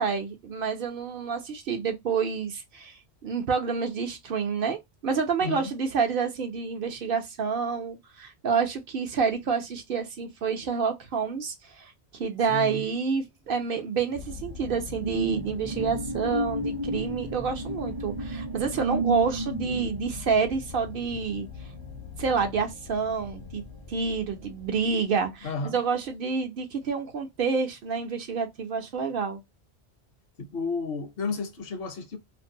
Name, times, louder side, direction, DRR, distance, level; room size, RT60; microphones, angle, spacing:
voice 1, 0.0-21.5 22.2-23.6 23.9-29.4, right 5 dB, 60° right, 0.8 m, -28 dB
voice 2, 5.4-5.7 12.5-12.9 25.4-25.8 30.4-32.2, left 4 dB, 65° left, 0.8 m, -32 dB
sound 1, 14.0-23.0 23.4-23.6, right 2 dB, 25° right, 0.5 m, -33 dB
sound 2, 14.1-26.1, left 6 dB, 40° left, 0.5 m, -43 dB
2.5 x 2.1 x 2.6 m
omnidirectional pair, 1.1 m